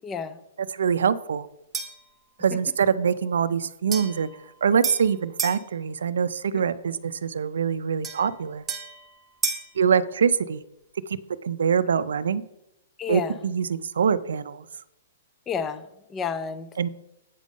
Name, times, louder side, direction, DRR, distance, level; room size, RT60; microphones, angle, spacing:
voice 1, 0.0-0.4 6.5-6.6 13.0-13.4 15.5-16.7, left 6 dB, 10° left, 13 dB, 0.3 m, -31 dB
voice 2, 0.7-1.5 2.4-4.3 4.6-8.6 9.8-10.6 11.4-12.4 13.1-14.6 16.8-16.9, right 7 dB, 85° right, 13 dB, 0.4 m, -24 dB
sound 1, 1.7-2.1 3.9-5.6 8.0-9.8, right 5 dB, 10° right, 0.8 m, -33 dB
8.3 x 5.3 x 5.1 m, 0.84 s
hypercardioid pair, 175°, 0 cm